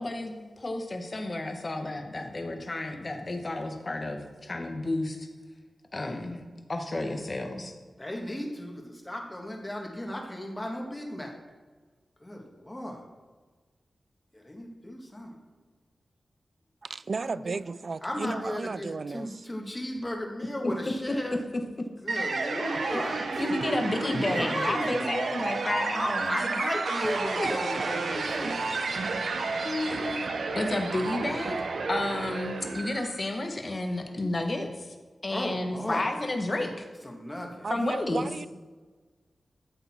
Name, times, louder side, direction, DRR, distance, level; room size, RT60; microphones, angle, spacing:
voice 1, 0.0-5.3 5.9-6.4 6.7-7.7 18.2-18.3 20.6-20.7 22.5-22.7 23.1-26.4 27.4-27.5 29.3-34.9 35.2-36.9 37.7-38.3, left 2 dB, 35° left, 1.4 m, -31 dB
voice 2, 8.0-11.4 12.2-13.1 14.3-15.3 17.2-17.6 18.0-21.4 22.0-23.4 24.0-24.9 25.9-28.5 35.3-36.0 37.0-37.7, left 1 dB, 15° left, 1.7 m, -35 dB
voice 3, 16.8-19.3 37.6-38.5, right 4 dB, 55° right, 0.3 m, -34 dB
sound 1, 22.1-33.2, right 3 dB, 75° right, 0.8 m, -31 dB
13.5 x 6.8 x 4.4 m
wide cardioid pair, 95°, 0 cm